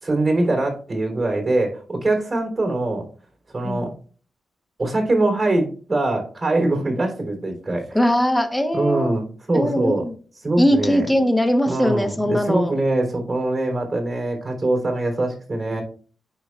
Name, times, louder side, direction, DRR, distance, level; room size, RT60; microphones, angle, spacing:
voice 1, 0.0-3.0 3.5-3.9 4.8-8.0 8.7-10.0 10.4-11.1 11.7-15.8, right 2 dB, 45° right, 1 dB, 3.3 m, -23 dB
voice 2, 7.9-9.2 9.5-10.1 10.6-12.7, equal, 5° left, 5 dB, 1.1 m, -20 dB
9.4 x 5.2 x 2.5 m, 0.41 s
cardioid pair, 55°, 0 cm